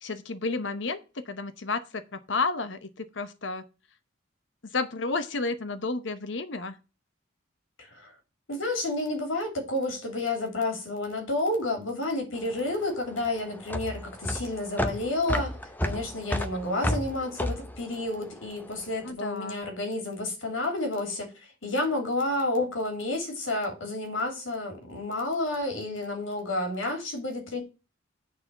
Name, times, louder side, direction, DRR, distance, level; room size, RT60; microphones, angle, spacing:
voice 1, 0.0-3.7 4.6-6.8 19.0-19.6, left 3 dB, 70° left, 0.9 m, -31 dB
voice 2, 7.8-8.1 8.5-15.6 15.8-21.3 21.6-27.6, left 2 dB, 85° left, 3.0 m, -30 dB
sound 1, 12.4-18.9, left 1 dB, 10° left, 0.6 m, -32 dB
9.4 x 4.2 x 6.9 m
head